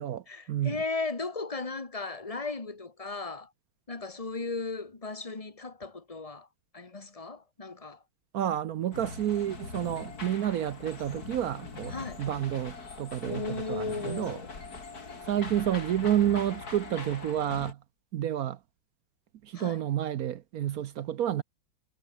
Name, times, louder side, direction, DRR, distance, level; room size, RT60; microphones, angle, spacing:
voice 1, 0.3-3.5 3.9-6.5 6.7-8.0 11.9-12.2 13.2-14.5 19.5-19.8, left 3 dB, 15° left, 1.7 m, -36 dB
voice 2, 8.3-14.4 15.2-17.8 18.1-18.6 19.4-21.4, right 11 dB, 70° right, 0.9 m, -30 dB
sound 1, 8.9-17.7, left 4 dB, 45° left, 3.5 m, -42 dB
omnidirectional pair, 2.3 m